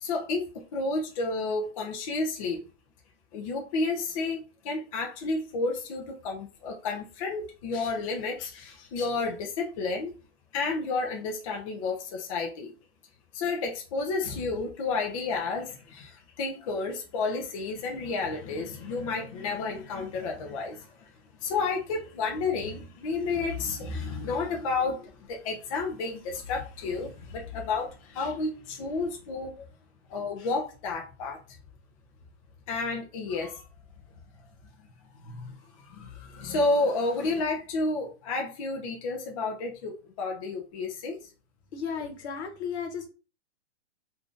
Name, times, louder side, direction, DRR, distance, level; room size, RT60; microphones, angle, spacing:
voice 1, 0.0-2.6 3.3-4.4 4.6-10.1 10.5-12.7 13.3-21.1 21.4-29.6 30.1-31.4 32.7-33.6 35.2-35.6 35.9-41.2, left 3 dB, 30° left, 0.5 m, -31 dB
voice 2, 41.7-43.1, left 6 dB, 70° left, 1.1 m, -34 dB
3.5 x 2.6 x 2.4 m
hypercardioid pair, 155°, 35 cm